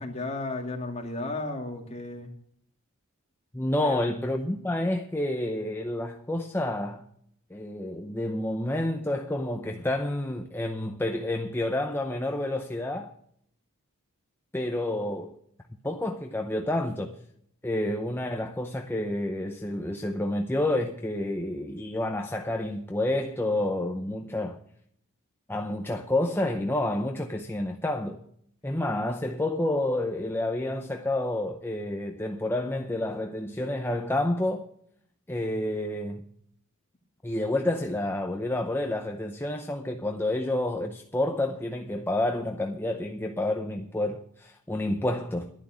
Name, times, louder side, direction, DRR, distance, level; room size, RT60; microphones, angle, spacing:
voice 1, 0.0-2.3 3.8-4.2, left 2 dB, 30° left, 2.1 m, -34 dB
voice 2, 3.5-7.0 7.5-13.1 14.5-15.4 15.8-17.2 17.6-24.6 25.5-28.2 28.6-34.7 35.3-36.2 37.2-45.5, left 1 dB, 10° left, 0.6 m, -29 dB
11.5 x 10.5 x 6.2 m
head